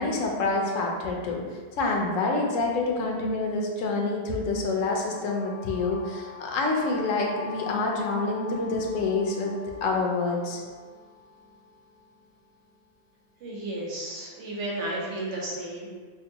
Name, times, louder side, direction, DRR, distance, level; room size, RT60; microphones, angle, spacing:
voice 1, 0.0-9.5 9.8-10.6, left 3 dB, 85° left, 0 dB, 1.0 m, -27 dB
sound 1, 4.9-12.8, left 5 dB, 5° left, 0.4 m, -43 dB
voice 2, 13.4-15.9, right 1 dB, 70° right, -3 dB, 1.1 m, -33 dB
5.1 x 2.1 x 2.8 m, 1.5 s
omnidirectional pair, 1.3 m